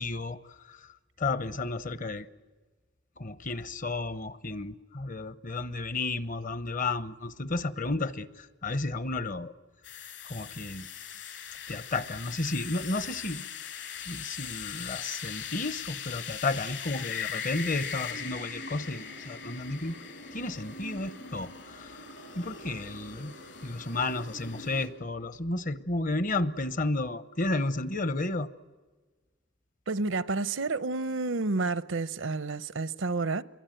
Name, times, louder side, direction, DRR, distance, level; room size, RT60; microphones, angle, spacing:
voice 1, 0.0-2.3 3.2-9.5 9.9-10.9 11.7-13.5 14.1-20.0 20.3-22.0 22.4-23.3 23.6-28.5, left 2 dB, 45° left, 0.9 m, -32 dB
sound 1, 9.8-24.9, left 7 dB, 75° left, 5.4 m, -40 dB
voice 2, 29.9-33.4, right 3 dB, 90° right, 0.8 m, -30 dB
28.0 x 22.5 x 9.1 m
head